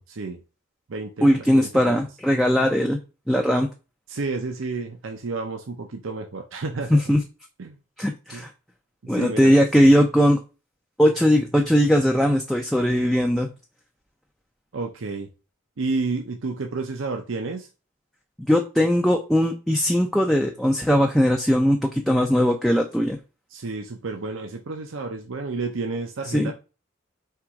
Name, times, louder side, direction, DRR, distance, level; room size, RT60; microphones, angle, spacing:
voice 1, 0.1-0.4 0.9-2.0 4.1-7.0 7.6-7.8 8.3-8.5 9.0-9.9 14.7-15.3 15.8-17.7 23.5-26.5, right 3 dB, 70° right, 4 dB, 0.6 m, -31 dB
voice 2, 1.2-3.0 3.3-3.7 6.9-7.2 8.0-8.5 9.1-10.4 11.0-13.5 18.5-23.2 26.3-26.5, equal, ahead, 1 dB, 0.4 m, -19 dB
4.6 x 3.0 x 3.5 m, 0.31 s
head